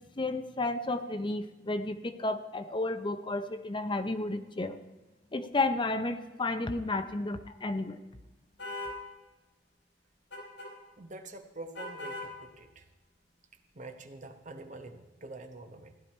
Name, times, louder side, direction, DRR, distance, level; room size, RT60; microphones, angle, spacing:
voice 1, 0.2-4.8 5.3-8.0, left 2 dB, 25° left, 9 dB, 0.7 m, -32 dB
sound 1, 8.6-9.0 10.3-10.7 11.7-12.3, left 1 dB, 75° left, 4.3 m, -39 dB
voice 2, 11.0-12.9 13.7-16.0, right 2 dB, 45° right, 6 dB, 1.1 m, -46 dB
16.0 x 10.5 x 4.4 m, 1.2 s
head